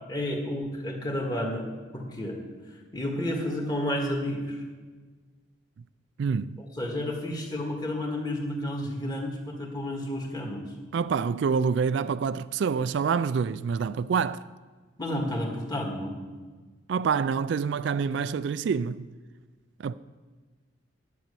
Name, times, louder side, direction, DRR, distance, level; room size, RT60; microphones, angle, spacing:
voice 1, 0.1-1.6 1.9-2.4 2.9-4.6 6.8-10.7 15.0-16.1, left 1 dB, 20° left, 1.8 m, -31 dB
voice 2, 6.2-6.6 10.9-14.4 16.9-19.1 19.8-19.9, right 6 dB, 60° right, 0.3 m, -27 dB
11.0 x 8.5 x 6.8 m
head